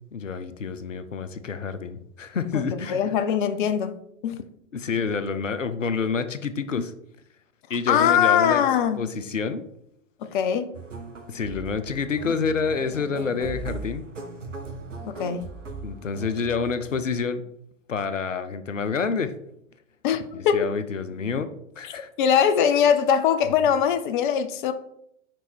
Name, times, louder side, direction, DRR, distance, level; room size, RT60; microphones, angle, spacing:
voice 1, 0.1-3.1 4.7-6.9 7.7-8.6 9.0-9.6 11.3-14.0 15.8-17.4 17.9-19.4 20.3-22.1, left 5 dB, 85° left, 0.6 m, -28 dB
voice 2, 2.5-4.0 4.2-4.4 7.9-9.1 10.2-10.7 15.0-15.6 20.0-20.7 21.9-24.7, left 8 dB, 40° left, 0.6 m, -22 dB
sound 1, 10.7-17.1, right 4 dB, 80° right, 1.0 m, -39 dB
5.1 x 4.5 x 4.5 m
figure-of-eight pair, 100°, 37 cm